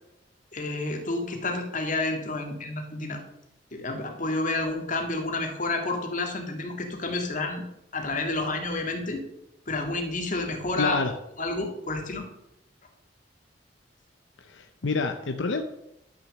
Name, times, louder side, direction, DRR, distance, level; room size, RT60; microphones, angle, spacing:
voice 1, 0.5-3.2 3.7-7.6 7.9-9.2 9.7-11.0 11.4-12.3, left 2 dB, 45° left, 3 dB, 2.0 m, -30 dB
voice 2, 10.8-11.1 14.5-15.6, left 4 dB, 85° left, 6 dB, 0.8 m, -27 dB
11.5 x 6.5 x 6.5 m, 0.84 s
head